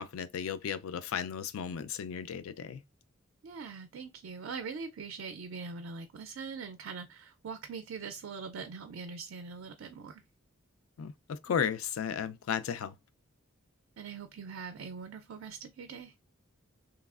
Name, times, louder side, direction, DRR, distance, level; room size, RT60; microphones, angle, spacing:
voice 1, 0.0-2.8 11.0-12.9, left 7 dB, 80° left, 0.4 m, -34 dB
voice 2, 3.4-10.2 14.0-16.1, right 5 dB, 65° right, 0.4 m, -42 dB
3.1 x 2.3 x 2.3 m
head